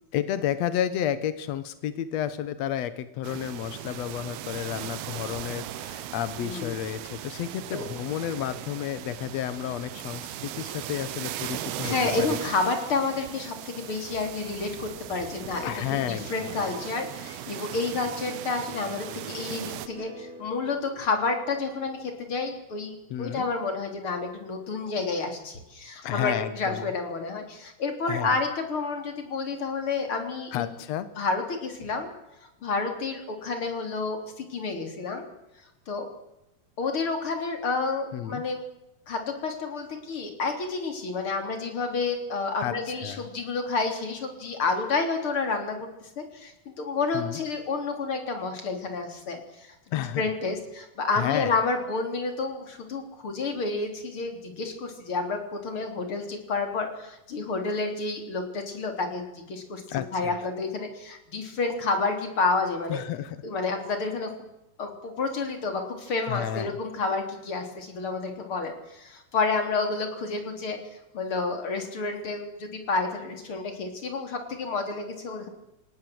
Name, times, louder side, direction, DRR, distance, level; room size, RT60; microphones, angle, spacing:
voice 1, 0.1-12.4 15.6-16.3 23.1-23.5 26.0-26.9 28.1-28.3 30.5-31.1 38.1-38.4 42.6-42.7 43.0-43.2 47.1-47.4 49.9-50.2 51.2-51.5 59.9-60.4 62.9-63.4 66.3-66.7, left 11 dB, 80° left, 13 dB, 1.5 m, -31 dB
sound 1, 3.2-19.9, right 12 dB, 80° right, 3.0 m, -38 dB
voice 2, 6.4-6.7 7.7-7.8 11.8-15.7 16.0-30.8 31.2-32.1 32.4-35.3 35.9-36.1 36.8-38.6 39.1-49.7 50.2-63.0 63.4-64.3 64.8-70.8 71.1-75.5, left 4 dB, 35° left, 5 dB, 4.0 m, -30 dB
sound 2, 15.4-23.8 24.2-24.8, right 3 dB, 60° right, 4.2 m, -47 dB
28.0 x 18.0 x 7.9 m, 0.91 s
omnidirectional pair, 4.5 m